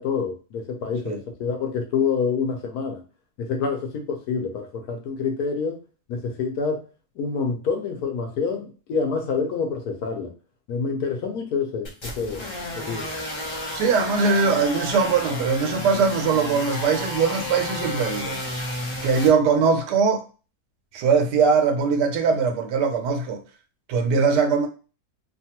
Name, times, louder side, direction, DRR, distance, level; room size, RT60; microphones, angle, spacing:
voice 1, 0.0-3.0 3.4-5.8 6.1-6.8 7.2-10.3 10.7-12.4 12.7-13.1, left 5 dB, 75° left, 1.1 m, -27 dB
sound 1, 11.8-19.3, left 1 dB, 45° left, 0.3 m, -32 dB
voice 2, 13.7-18.4 19.0-20.2 20.9-23.4 23.9-24.7, right 5 dB, 90° right, 1.2 m, -21 dB
2.9 x 2.3 x 2.8 m
omnidirectional pair, 1.7 m